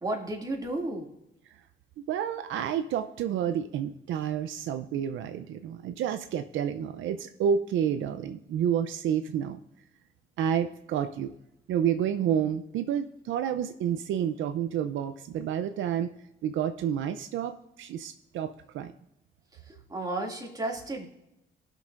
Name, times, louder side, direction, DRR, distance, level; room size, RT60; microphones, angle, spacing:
voice 1, 0.0-1.1 19.5-21.1, right 2 dB, 20° right, -1 dB, 2.3 m, -33 dB
voice 2, 2.1-9.6 10.4-11.3 11.7-16.1 16.4-18.9, right 9 dB, 80° right, 8 dB, 0.6 m, -29 dB
19.0 x 6.5 x 2.5 m, 0.87 s
cardioid pair, 90°, 20 cm